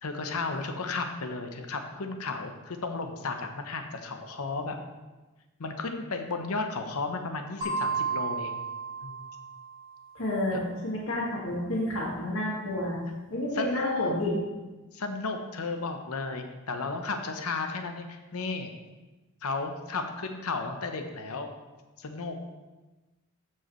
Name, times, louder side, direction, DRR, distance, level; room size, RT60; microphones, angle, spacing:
voice 1, 0.0-4.8 5.6-8.6 9.0-9.3 10.5-10.7 13.5-14.3 14.9-18.7 19.4-21.5 22.0-22.4, left 3 dB, 80° left, 5 dB, 0.8 m, -34 dB
sound 1, 7.6-10.1, right 5 dB, 25° right, 2.5 m, -33 dB
voice 2, 10.1-13.0 13.3-14.3, left 1 dB, 65° left, -4 dB, 1.8 m, -30 dB
13.0 x 4.7 x 3.1 m, 1.2 s
head